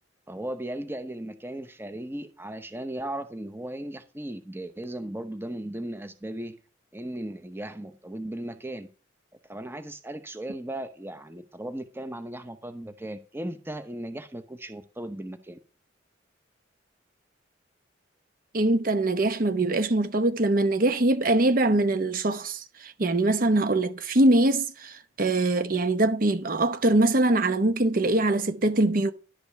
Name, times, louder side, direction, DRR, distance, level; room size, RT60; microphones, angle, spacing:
voice 1, 0.3-6.6 6.9-8.9 9.5-15.6, right 1 dB, 10° right, 0.8 m, -36 dB
voice 2, 18.5-29.1, right 2 dB, 45° right, 0.8 m, -23 dB
11.5 x 5.2 x 6.5 m
head